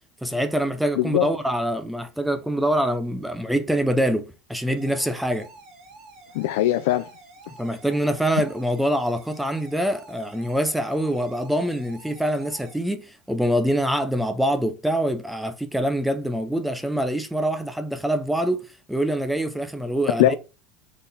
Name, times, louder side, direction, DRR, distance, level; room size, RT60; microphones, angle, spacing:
voice 1, 0.2-5.5 7.6-18.6 18.9-20.4, right 1 dB, ahead, 0.5 m, -25 dB
voice 2, 1.0-1.3 6.3-7.1 20.2-20.4, left 13 dB, 70° left, 0.5 m, -20 dB
sound 1, 4.8-12.8, right 3 dB, 40° right, 3.7 m, -48 dB
6.0 x 3.9 x 3.9 m
supercardioid pair, 160°, 0 cm